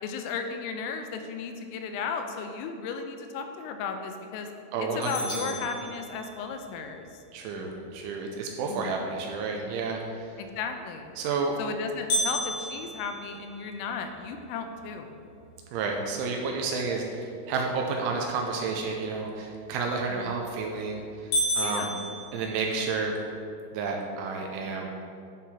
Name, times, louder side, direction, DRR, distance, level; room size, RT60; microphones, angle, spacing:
voice 1, 0.0-4.5 4.8-7.1 8.6-9.1 10.4-11.1 11.6-15.1 20.1-20.3 21.6-21.9, left 5 dB, 90° left, 6 dB, 3.2 m, -35 dB
voice 2, 4.7-5.5 7.3-10.3 11.2-11.6 15.7-21.0 21.6-21.9 22.3-23.1 23.7-24.9, right 4 dB, 85° right, 1 dB, 2.8 m, -31 dB
sound 1, 5.0-6.6 12.1-14.3 14.8-14.9 15.4-15.5 16.1-16.4 20.1-20.5 20.9-21.0 21.3-23.1, equal, 65° left, 3.5 m, -32 dB
11.0 x 3.9 x 4.2 m, 2.5 s
omnidirectional pair, 5.8 m